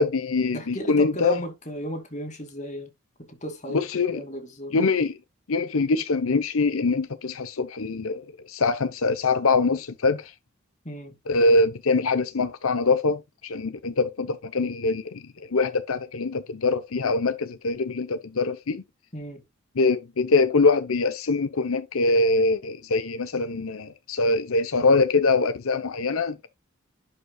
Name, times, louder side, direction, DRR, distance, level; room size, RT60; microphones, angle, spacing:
voice 1, 0.0-1.4 3.7-4.2 4.7-5.2 5.5-10.3 11.3-15.2 15.5-18.8 19.8-26.5, left 3 dB, 85° left, 0.7 m, -23 dB
voice 2, 0.5-2.9 3.3-4.7 10.8-11.2 19.1-19.4, right 1 dB, 35° left, 2.4 m, -35 dB
11.0 x 5.3 x 2.3 m
head